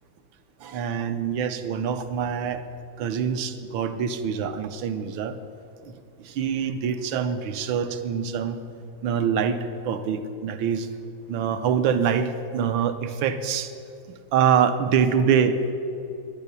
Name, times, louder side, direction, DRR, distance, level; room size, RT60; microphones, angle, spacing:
voice 1, 0.6-2.6 3.0-5.4 5.8-5.9 6.2-8.6 9.0-10.9 11.3-13.7 14.3-15.7, right 7 dB, 85° right, 9 dB, 1.5 m, -25 dB
11.0 x 10.5 x 6.8 m, 2.7 s
omnidirectional pair, 2.1 m